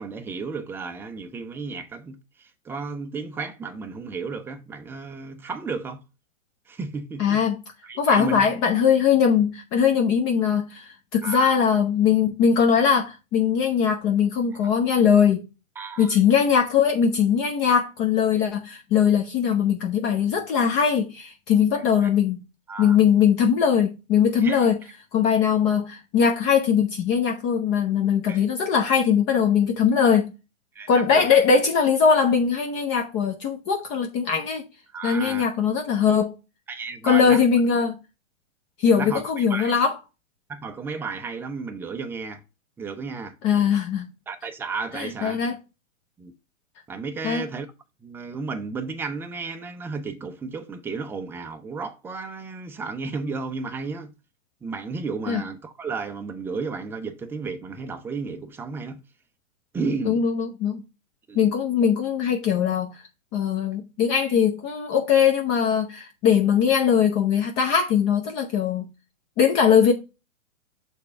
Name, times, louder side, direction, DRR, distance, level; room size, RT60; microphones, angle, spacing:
voice 1, 0.0-6.0 6.7-7.4 7.8-8.5 11.2-11.5 15.8-16.2 21.7-22.1 22.7-23.0 24.4-24.7 28.3-28.4 30.7-31.3 34.9-35.4 36.7-37.4 38.9-39.8 40.5-42.4 42.8-43.4 44.3-45.4 46.2-46.3 46.9-47.7 48.0-54.1 54.6-59.0 59.7-60.2 61.3-61.5, right 4 dB, 5° right, 0.5 m, -33 dB
voice 2, 7.2-7.6 8.0-15.4 16.0-22.4 22.8-24.8 25.1-30.3 30.9-34.6 35.0-36.3 37.0-38.0 38.8-39.9 43.4-44.1 44.9-45.5 47.2-47.4 55.3-55.4 60.0-60.8 61.3-62.9 63.3-68.8 69.4-69.9, left 7 dB, 30° left, 0.9 m, -21 dB
6.5 x 3.6 x 5.3 m
hypercardioid pair, 115°, 39 cm